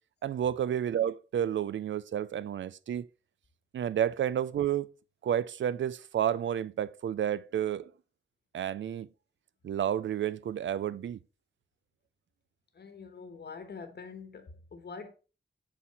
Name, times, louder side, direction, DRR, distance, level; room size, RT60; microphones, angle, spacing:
voice 1, 0.2-3.1 3.7-4.9 5.2-7.9 8.5-9.1 9.6-11.2, right 10 dB, 80° right, 0.4 m, -30 dB
voice 2, 12.7-15.1, left 5 dB, 60° left, 1.2 m, -45 dB
7.5 x 4.1 x 4.1 m
wide cardioid pair, 105°, 19 cm